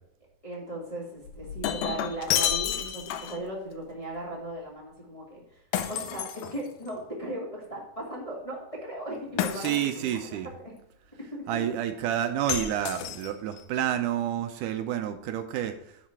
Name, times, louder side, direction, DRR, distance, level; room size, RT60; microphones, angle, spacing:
voice 1, 0.4-5.4 5.9-9.7 10.0-10.7 11.2-11.4, right 1 dB, 15° left, -4 dB, 1.7 m, -37 dB
Shatter, 1.2-3.5 5.7-7.0 9.4-10.2 12.5-13.6, left 10 dB, 80° left, 2.2 m, -31 dB
voice 2, 9.6-10.5 11.5-15.8, right 11 dB, 80° right, 8 dB, 2.1 m, -29 dB
10.0 x 4.2 x 6.0 m, 0.80 s
omnidirectional pair, 3.8 m